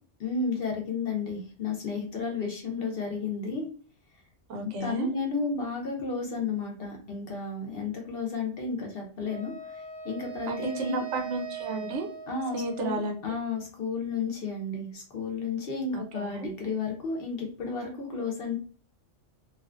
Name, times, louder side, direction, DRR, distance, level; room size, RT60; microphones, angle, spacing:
voice 1, 0.2-3.7 4.6-9.5 10.0-11.0 12.3-18.6, left 4 dB, 60° left, 1 dB, 0.7 m, -32 dB
voice 2, 4.5-5.1 10.5-12.1 12.5-13.4 15.9-16.5, right 2 dB, 75° right, 3 dB, 0.9 m, -33 dB
Wind instrument woodwind instrument, 9.2-13.4, right 7 dB, 20° right, 0.7 m, -41 dB
2.4 x 2.3 x 2.3 m, 0.41 s
omnidirectional pair, 1.3 m